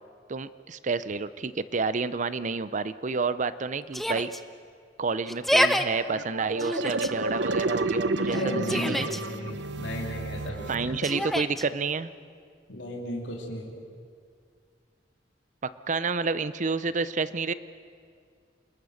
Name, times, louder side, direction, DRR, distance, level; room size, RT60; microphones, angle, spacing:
voice 1, 0.3-4.3 5.0-8.4 8.7-9.1 10.7-12.1 15.6-17.5, right 4 dB, 45° right, 15 dB, 0.6 m, -29 dB
Yell, 3.9-4.4 5.3-5.8 6.6-7.1 8.3-9.2 11.0-11.6, equal, ahead, 0.8 m, -27 dB
sound 1, 6.1-11.5, right 2 dB, 80° right, 0.8 m, -31 dB
voice 2, 8.3-10.9 12.7-13.7, left 1 dB, 90° left, -1 dB, 2.9 m, -35 dB
27.5 x 20.5 x 6.5 m, 2.2 s
head